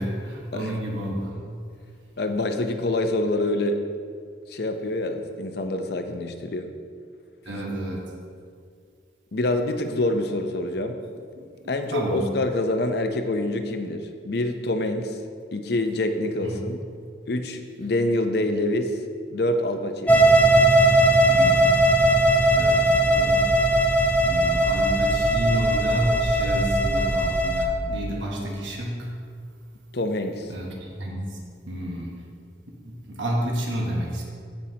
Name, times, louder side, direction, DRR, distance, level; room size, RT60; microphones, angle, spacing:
voice 1, 0.0-1.4 7.4-8.1 11.4-11.5 11.9-12.3 16.4-16.6 21.2-21.9 22.4-23.4 23.7-23.8 24.2-29.1 30.5-31.4 31.7-32.2 32.9-34.2, right 1 dB, 75° right, -2 dB, 1.3 m, -30 dB
voice 2, 2.2-3.8 4.5-6.7 9.3-11.0 11.7-15.2 15.5-16.8 17.3-19.0 19.3-20.2 29.9-30.5, left 1 dB, 55° left, 6 dB, 0.6 m, -26 dB
sound 1, 20.1-27.7, right 1 dB, 5° left, 0.5 m, -19 dB
15.5 x 5.6 x 2.9 m, 2.2 s
head